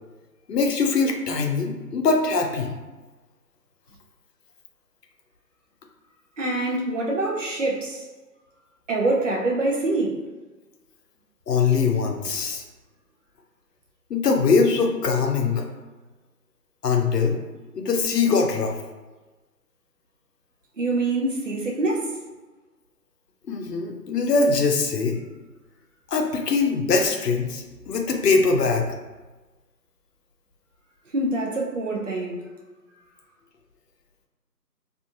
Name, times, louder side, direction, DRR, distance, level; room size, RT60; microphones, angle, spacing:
voice 1, 0.5-2.7 11.5-12.6 14.1-15.7 16.8-17.4 17.7-18.8 23.5-25.2 26.1-28.9, left 4 dB, 75° left, 3 dB, 0.6 m, -22 dB
voice 2, 6.4-8.1 8.9-10.2 20.8-22.2 31.1-32.5, right 2 dB, 50° right, -2 dB, 0.5 m, -25 dB
2.5 x 2.5 x 2.4 m, 1.2 s
figure-of-eight pair, 170°, 50 cm